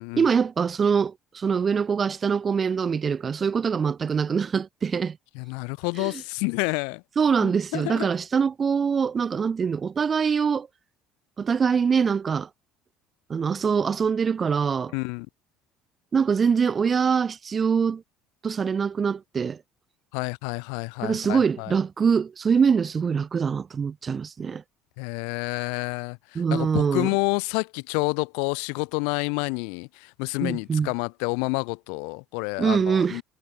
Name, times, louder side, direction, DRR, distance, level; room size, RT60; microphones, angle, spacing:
voice 1, 0.1-5.2 6.0-6.2 7.2-10.7 11.4-12.5 13.3-14.9 16.1-18.0 18.4-19.6 21.0-24.6 26.4-27.1 30.4-30.9 32.6-33.2, right 6 dB, 35° right, 0.4 m, -24 dB
voice 2, 5.3-7.0 7.4-8.1 14.9-15.3 20.1-21.8 25.0-33.2, left 40 dB or more, 85° left, 0.8 m, -29 dB
supercardioid pair, 95°, 0 cm